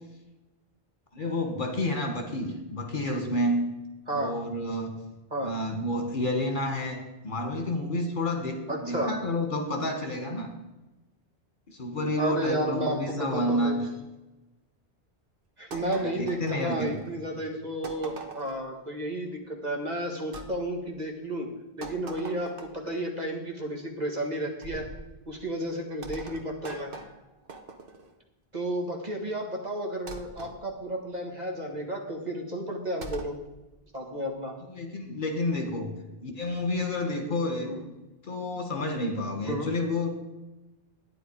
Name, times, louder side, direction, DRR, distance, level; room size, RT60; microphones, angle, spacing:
voice 1, 1.1-3.6 4.1-4.9 5.4-10.5 11.7-13.9 16.2-17.0 34.7-35.9 36.2-37.8 38.2-40.1, left 1 dB, 55° left, 3 dB, 1.9 m, -30 dB
voice 2, 4.1-4.4 5.3-5.6 8.7-9.2 12.2-13.8 15.6-21.5 21.8-24.9 25.3-26.9 28.5-33.3 33.9-34.6 37.6-37.8 39.5-39.7, right 1 dB, 45° right, 0 dB, 1.8 m, -32 dB
sound 1, 15.7-17.1 17.8-18.7 20.3-20.5 21.8-22.9 24.6-25.0 26.0-28.1 30.1-30.6 33.0-33.4, right 3 dB, 60° right, 1.2 m, -42 dB
12.0 x 9.6 x 4.8 m, 1.1 s
omnidirectional pair, 1.0 m